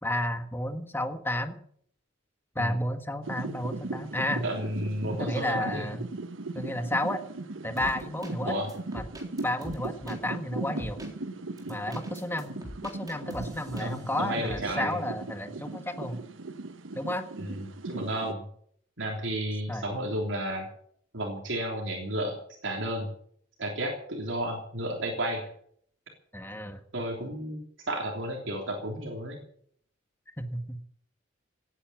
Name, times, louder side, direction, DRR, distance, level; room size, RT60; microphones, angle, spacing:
voice 1, 0.0-1.6 2.5-4.4 5.0-6.0 6.5-7.2 7.6-8.6 8.9-9.0 9.4-11.0 11.7-12.5 12.8-16.2 16.9-17.3 19.7-19.8 26.3-26.8 30.4-30.8, left 1 dB, 10° left, 7 dB, 1.6 m, -32 dB
sound 1, 3.2-18.3, right 2 dB, 90° right, 1.0 m, -38 dB
voice 2, 4.4-5.9 8.4-8.7 13.8-15.0 17.4-18.4 19.0-20.7 21.1-22.4 22.6-23.1 23.6-25.4 26.9-29.4, right 1 dB, 75° right, 0 dB, 3.4 m, -32 dB
sound 2, 7.8-8.3 8.7-10.2 10.8-11.1 11.6-14.1 14.5-14.8, equal, 20° right, 3.9 m, -43 dB
17.5 x 9.9 x 7.3 m, 0.64 s
head